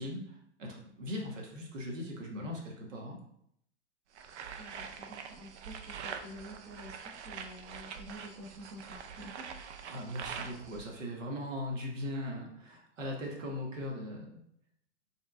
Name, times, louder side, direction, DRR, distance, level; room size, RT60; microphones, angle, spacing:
voice 1, 0.0-3.2 9.9-14.3, left 1 dB, 90° right, 0 dB, 1.4 m, -39 dB
voice 2, 2.8-3.2 4.6-9.5, equal, 30° right, 0 dB, 0.7 m, -49 dB
sound 1, 4.2-10.9, right 6 dB, 65° right, 0.6 m, -44 dB
4.7 x 3.6 x 2.4 m, 0.71 s
hypercardioid pair, 150°, 37 cm